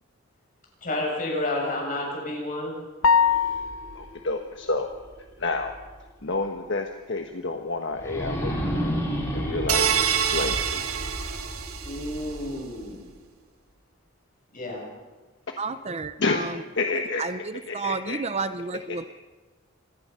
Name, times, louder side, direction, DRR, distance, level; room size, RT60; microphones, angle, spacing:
voice 1, 0.8-2.8 11.8-13.0 14.5-14.8, left 1 dB, 40° left, -1 dB, 7.4 m, -30 dB
sound 1, 3.0-4.1, left 6 dB, 80° left, 0.8 m, -21 dB
sound 2, 3.1-6.0 6.5-6.6 8.0-13.0, equal, 15° left, 4.7 m, -33 dB
voice 2, 3.9-4.9 5.4-5.7 6.2-8.8 9.3-10.8 16.2-16.5 16.7-17.2 17.7-18.2 18.9-19.1, left 3 dB, 55° left, 4 dB, 1.3 m, -29 dB
sound 3, 9.7-12.2, right 8 dB, 85° right, 1.8 m, -26 dB
voice 3, 15.6-16.6 17.2-19.0, right 4 dB, 30° right, 12 dB, 0.6 m, -31 dB
26.5 x 18.5 x 5.7 m, 1.3 s
head